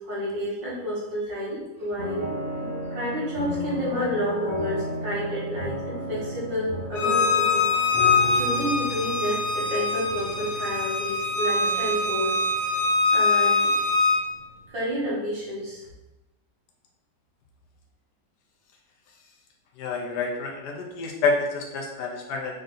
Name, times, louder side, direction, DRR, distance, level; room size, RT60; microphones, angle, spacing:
voice 1, 0.0-2.3 2.9-7.7 8.3-12.4 13.1-13.7 14.7-15.8, equal, 80° right, -7 dB, 2.4 m, -30 dB
sound 1, 2.0-15.0 15.3-15.4, left 1 dB, 35° left, 1.1 m, -35 dB
Bowed string instrument, 7.0-14.2, left 3 dB, 85° left, 1.4 m, -23 dB
voice 2, 19.8-22.6, left 4 dB, 70° left, 0 dB, 1.1 m, -28 dB
5.0 x 2.7 x 3.9 m, 1.0 s
omnidirectional pair, 2.0 m